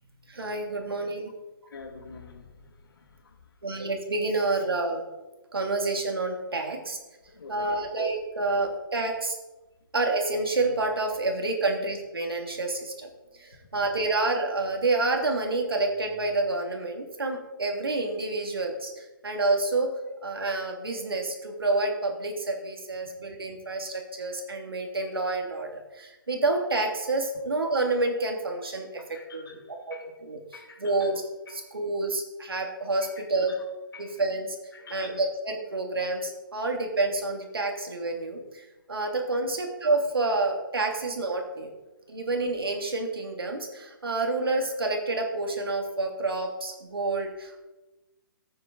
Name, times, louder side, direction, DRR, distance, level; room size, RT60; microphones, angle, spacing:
voice 1, 0.3-1.3 3.6-5.0 5.5-7.0 7.5-9.4 9.9-13.1 13.3-19.9 20.2-29.0 29.3-30.0 30.2-30.4 30.8-31.1 31.5-33.5 34.0-34.5 34.9-41.7 42.1-47.7, right 2 dB, 90° right, 2 dB, 3.1 m, -28 dB
voice 2, 1.7-3.4 7.2-7.8 13.7-13.9 29.1-30.0 30.5-31.1 31.5-31.7 33.0-33.7 33.9-34.2 34.7-35.2, left 4 dB, 75° left, 2 dB, 2.4 m, -47 dB
14.5 x 9.5 x 4.1 m, 1.1 s
hypercardioid pair, 145°, 12 cm